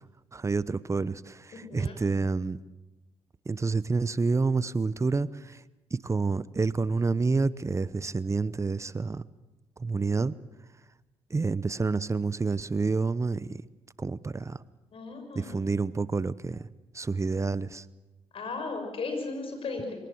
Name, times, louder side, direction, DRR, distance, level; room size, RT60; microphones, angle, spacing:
voice 1, 0.3-2.6 3.5-5.6 5.9-9.2 9.8-10.4 11.3-13.6 14.0-14.6 15.3-16.7 16.9-17.9, right 4 dB, 30° right, 18 dB, 0.9 m, -28 dB
voice 2, 1.5-1.9 14.9-15.7 18.3-20.0, left 3 dB, 60° left, 5 dB, 6.8 m, -36 dB
24.5 x 18.5 x 7.9 m, 1.0 s
supercardioid pair, 65°, 11 cm